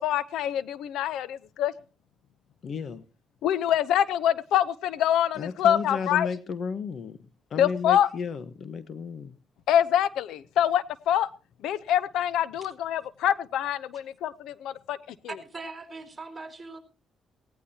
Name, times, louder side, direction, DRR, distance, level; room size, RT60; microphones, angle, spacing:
voice 1, 0.0-1.7 3.4-6.3 7.6-8.1 9.7-11.3 11.6-15.0 15.2-15.3, left 10 dB, 85° left, 0.7 m, -25 dB
voice 2, 2.6-3.0 5.4-7.2 7.5-9.4, left 5 dB, 55° left, 1.2 m, -33 dB
voice 3, 15.3-16.8, right 3 dB, 25° right, 5.0 m, -40 dB
18.5 x 18.0 x 2.8 m
cardioid pair, 90°, 0 cm